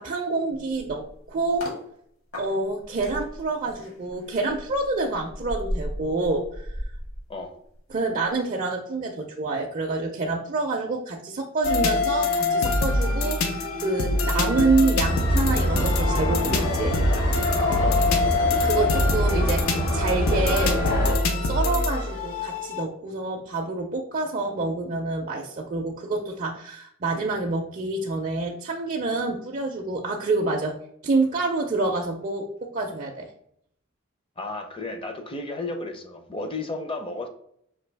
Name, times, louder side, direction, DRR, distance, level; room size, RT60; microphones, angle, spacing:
voice 1, 0.0-1.7 2.4-6.8 7.9-17.0 18.6-20.8 21.4-30.8 31.0-33.3, right 3 dB, 40° right, 1 dB, 0.4 m, -27 dB
sound 1, 0.5-1.8 2.3-7.9 8.2-8.5, equal, 70° left, 1.6 m, -36 dB
sound 2, 11.6-22.8, left 2 dB, 90° left, 0.6 m, -24 dB
sound 3, 15.0-21.2, equal, 50° left, 0.9 m, -26 dB
voice 2, 34.4-37.3, left 2 dB, 25° left, 6 dB, 0.5 m, -33 dB
5.1 x 2.6 x 3.3 m, 0.69 s
head